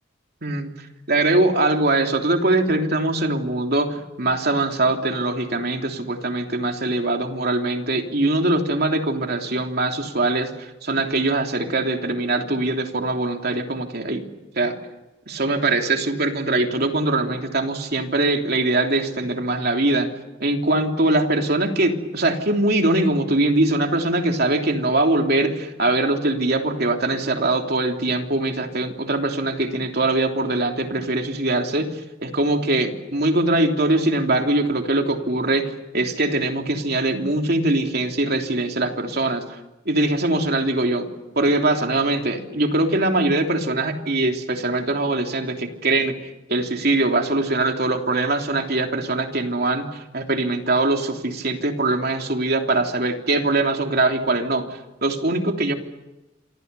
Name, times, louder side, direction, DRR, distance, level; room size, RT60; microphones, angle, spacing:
voice 1, 0.4-14.2 14.6-14.7 15.3-20.1 20.4-39.6 39.8-41.1 41.3-54.6 55.0-55.7, right 2 dB, 50° right, 3 dB, 3.2 m, -22 dB
27.5 x 26.0 x 7.0 m, 1.0 s
head